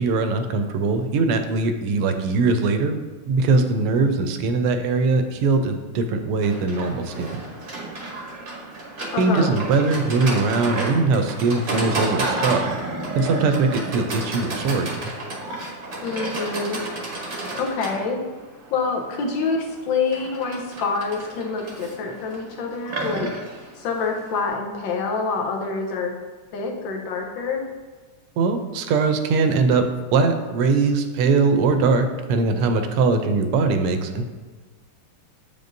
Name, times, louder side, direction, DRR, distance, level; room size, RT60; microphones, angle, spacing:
voice 1, 0.0-3.0 3.3-7.4 9.2-12.7 13.2-14.9 28.4-29.9 30.1-34.2, right 4 dB, 85° right, 7 dB, 1.5 m, -21 dB
Livestock farm animals working animals, 6.4-24.5, right 2 dB, 40° right, 0.8 m, -31 dB
voice 2, 9.1-9.5 16.0-16.8 17.6-18.2 18.7-23.3 23.8-26.1 26.5-27.6, left 4 dB, 65° left, 2 dB, 1.5 m, -26 dB
8.1 x 5.2 x 2.6 m, 1.3 s
omnidirectional pair, 2.4 m